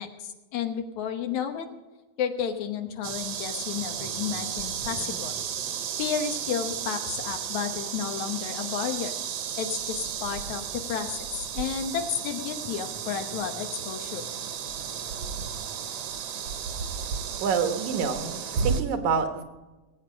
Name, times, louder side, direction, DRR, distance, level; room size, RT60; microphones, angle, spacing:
voice 1, 0.0-1.7 2.2-5.4 6.0-9.2 9.6-14.3, left 8 dB, 75° left, 6 dB, 2.4 m, -32 dB
sound 1, 3.0-18.8, right 7 dB, 65° right, 2.0 m, -33 dB
voice 2, 17.4-19.4, right 6 dB, 80° right, 7 dB, 2.8 m, -27 dB
19.0 x 8.7 x 5.1 m, 1.2 s
omnidirectional pair, 3.4 m